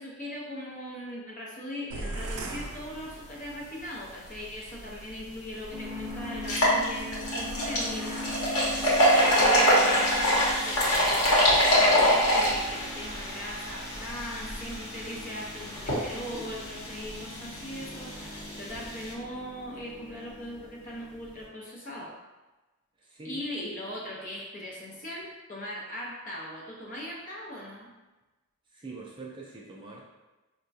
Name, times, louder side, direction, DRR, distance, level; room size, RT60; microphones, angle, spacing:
voice 1, 0.0-8.3 9.1-22.1 23.2-27.9, left 1 dB, 35° left, -4 dB, 0.8 m, -39 dB
sound 1, 1.9-3.8, right 2 dB, 90° right, 0.4 m, -37 dB
sound 2, 5.1-5.2 5.6-5.7 6.3-19.1, equal, 80° left, 1.0 m, -25 dB
sound 3, 5.7-21.5, left 1 dB, 5° left, 0.8 m, -42 dB
voice 2, 28.7-30.0, right 3 dB, 20° right, -3 dB, 0.4 m, -43 dB
4.3 x 2.3 x 2.6 m, 1.1 s
head